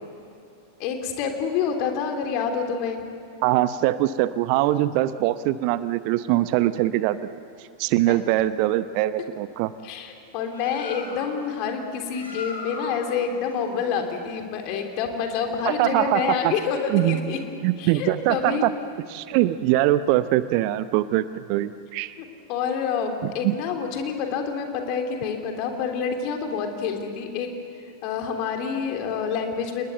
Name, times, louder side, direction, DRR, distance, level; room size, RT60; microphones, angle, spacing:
voice 1, 0.8-3.0 7.9-8.2 9.8-17.4 17.8-18.7 22.2-27.5 28.0-29.9, left 6 dB, 40° left, 4 dB, 3.2 m, -28 dB
voice 2, 3.4-7.2 7.8-9.7 15.7-16.5 16.9-17.2 17.6-18.7 19.1-22.2 23.2-23.5, right 15 dB, 45° right, 15 dB, 0.7 m, -22 dB
Bird, 10.3-15.4, left 2 dB, 80° left, 4.8 m, -41 dB
29.0 x 20.5 x 8.0 m, 2.7 s
figure-of-eight pair, 90°, 0 cm